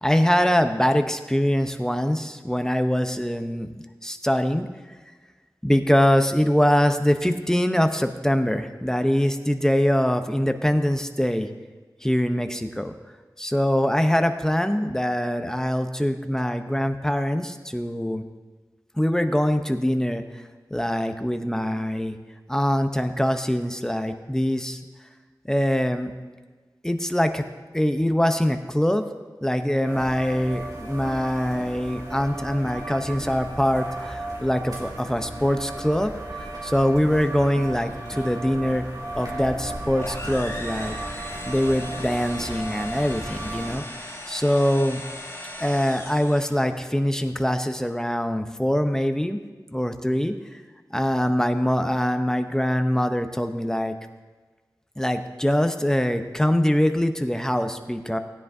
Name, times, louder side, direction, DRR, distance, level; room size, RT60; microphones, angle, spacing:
voice 1, 0.0-3.7 4.0-4.7 5.6-11.5 12.0-12.9 13.4-18.2 19.0-20.2 20.7-22.2 22.5-24.8 25.5-26.1 26.8-27.4 27.7-29.0 29.4-36.1 36.6-38.8 39.1-43.8 44.3-45.0 45.6-49.4 49.7-50.3 50.9-53.9 55.0-58.2, equal, 5° left, 7 dB, 0.8 m, -23 dB
sound 1, 29.8-43.7, right 2 dB, 60° right, 3.0 m, -35 dB
sound 2, 40.0-46.7, left 1 dB, 35° left, 1.7 m, -38 dB
17.0 x 9.9 x 2.7 m, 1.4 s
wide cardioid pair, 55°, 8 cm